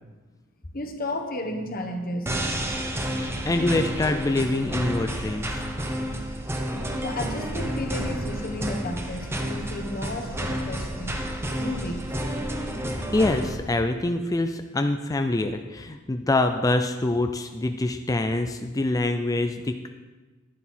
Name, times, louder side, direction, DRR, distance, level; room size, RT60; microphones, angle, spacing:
voice 1, 0.7-2.3 6.9-11.3 11.6-12.0, left 1 dB, 45° left, 4 dB, 1.3 m, -33 dB
sound 1, 2.3-13.5, right 1 dB, 10° right, 0.9 m, -30 dB
voice 2, 3.1-5.6 13.1-19.9, left 2 dB, 15° left, 6 dB, 0.4 m, -25 dB
10.5 x 10.5 x 4.4 m, 1.3 s
head